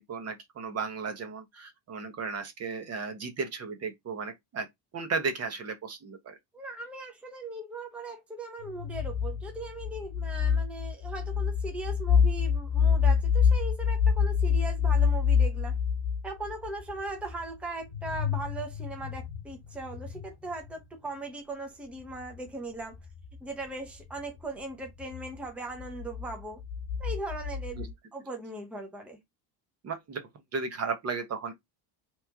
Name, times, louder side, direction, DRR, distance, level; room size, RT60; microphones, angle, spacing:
voice 1, 0.0-4.7 4.9-6.4 27.8-27.9 29.8-31.5, right 4 dB, 40° right, 0.7 m, -35 dB
voice 2, 6.5-15.7 16.2-23.0 23.4-26.6 27.0-29.2, right 2 dB, 5° right, 0.6 m, -39 dB
sound 1, 8.6-20.9 21.9-27.9, left 6 dB, 70° left, 0.9 m, -28 dB
3.0 x 2.5 x 3.4 m
cardioid pair, 150°, 41 cm